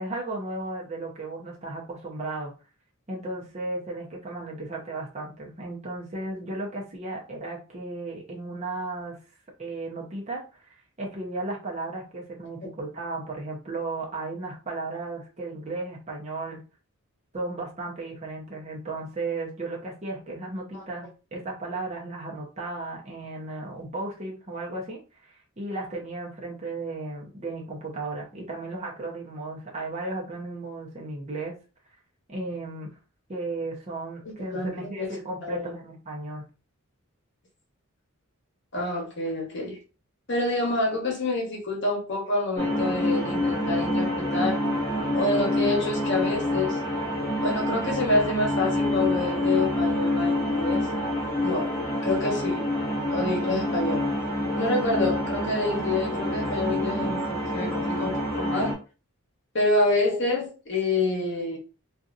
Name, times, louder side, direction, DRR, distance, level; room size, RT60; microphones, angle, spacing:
voice 1, 0.0-2.5 3.1-9.2 9.6-16.6 17.3-25.0 25.6-31.5 32.3-32.9 33.3-36.4, right 2 dB, 30° right, -2 dB, 0.8 m, -35 dB
voice 2, 35.4-35.7 38.7-39.8 40.3-44.6 45.1-46.8 47.4-50.9 51.4-51.7 52.0-52.7 53.1-54.0 54.5-58.7 59.5-61.6, left 2 dB, 50° left, -1 dB, 1.1 m, -27 dB
sound 1, 42.6-58.7, left 1 dB, 15° left, 0.9 m, -27 dB
2.8 x 2.5 x 2.5 m, 0.33 s
head